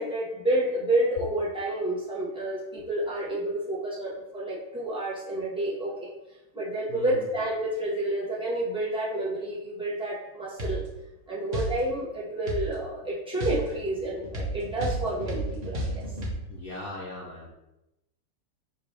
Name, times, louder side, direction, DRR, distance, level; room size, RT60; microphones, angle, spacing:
voice 1, 0.0-6.1 6.5-10.8 11.3-16.0, right 1 dB, 5° right, -8 dB, 0.9 m, -29 dB
voice 2, 6.9-7.3 16.5-17.5, left 2 dB, 70° left, -4 dB, 0.8 m, -39 dB
sound 1, 10.6-10.8 11.5-11.8 12.5-12.7 13.4-16.3, right 1 dB, 60° right, 0.4 m, -31 dB
5.8 x 2.7 x 3.3 m, 0.93 s
omnidirectional pair, 2.4 m